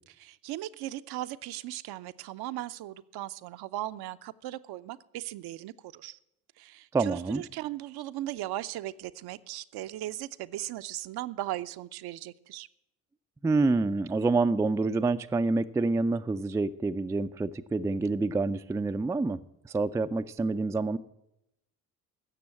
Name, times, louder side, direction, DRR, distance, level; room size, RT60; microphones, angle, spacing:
voice 1, 0.1-6.2 6.6-12.7, right 14 dB, 50° right, 0.6 m, -38 dB
voice 2, 6.9-7.4 13.4-19.4 19.7-21.0, right 3 dB, 5° right, 0.4 m, -27 dB
15.5 x 6.8 x 8.5 m
figure-of-eight pair, 50°, 48 cm